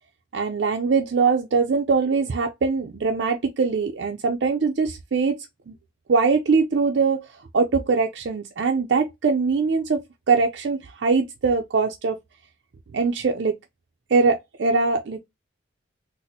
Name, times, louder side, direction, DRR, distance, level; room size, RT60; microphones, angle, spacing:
voice 1, 0.3-5.4 5.7-5.8 6.1-7.3 7.5-10.0 10.3-12.2 12.9-13.6 14.1-15.2, right 4 dB, 70° right, 0.5 m, -22 dB
4.1 x 2.0 x 2.7 m
head